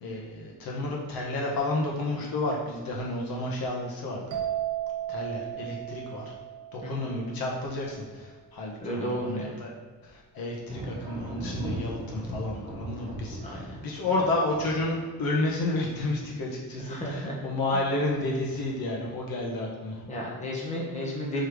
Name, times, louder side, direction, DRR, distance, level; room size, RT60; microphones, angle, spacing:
voice 1, 0.0-4.2 5.1-6.3 6.7-9.7 10.0-20.0, left 2 dB, 65° left, -2 dB, 1.4 m, -31 dB
sound 1, 4.3-7.9, right 11 dB, 55° right, 1.4 m, -35 dB
voice 2, 8.8-9.4 13.4-13.8 16.8-17.3 20.1-21.4, equal, 20° left, -5 dB, 1.4 m, -33 dB
Thunder, 10.6-17.1 17.4-18.0 18.5-19.3, right 1 dB, 20° right, 1.1 m, -39 dB
4.7 x 4.5 x 5.0 m, 1.5 s
cardioid pair, 175°, 38 cm